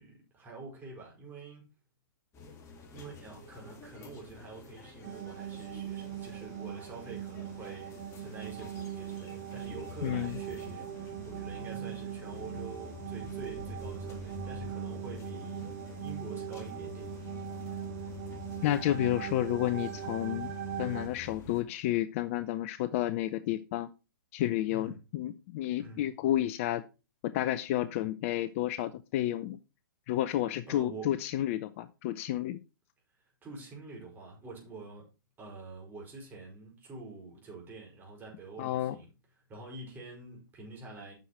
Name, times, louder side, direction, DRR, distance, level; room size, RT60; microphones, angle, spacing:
voice 1, 0.0-1.7 2.9-15.6 16.0-17.1 24.7-25.0 25.8-26.0 30.7-31.2 33.4-35.1 35.4-39.1 39.5-41.1, right 3 dB, 15° right, 4.9 m, -46 dB
sound 1, 2.3-21.6, left 2 dB, 25° left, 2.0 m, -48 dB
sound 2, 5.0-21.1, right 8 dB, 45° right, 1.9 m, -40 dB
voice 2, 10.0-10.4 18.6-20.5 20.8-23.9 24.3-26.8 27.2-29.6 30.1-32.6 38.6-39.0, left 13 dB, 40° left, 0.5 m, -31 dB
9.2 x 6.4 x 4.3 m
figure-of-eight pair, 120°, 11 cm